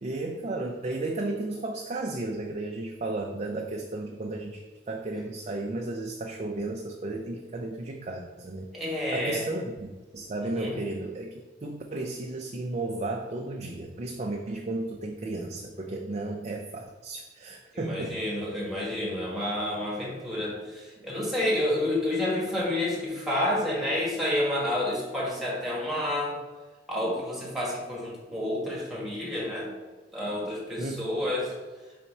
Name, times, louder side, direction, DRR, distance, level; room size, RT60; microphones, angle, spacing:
voice 1, 0.0-8.7 9.1-18.2 30.8-31.0, right 2 dB, 40° right, 1 dB, 0.5 m, -34 dB
voice 2, 8.7-9.4 10.4-10.8 17.7-26.4 26.9-29.7 30.1-31.6, left 1 dB, ahead, -5 dB, 1.9 m, -29 dB
4.3 x 4.2 x 5.5 m, 1.3 s
head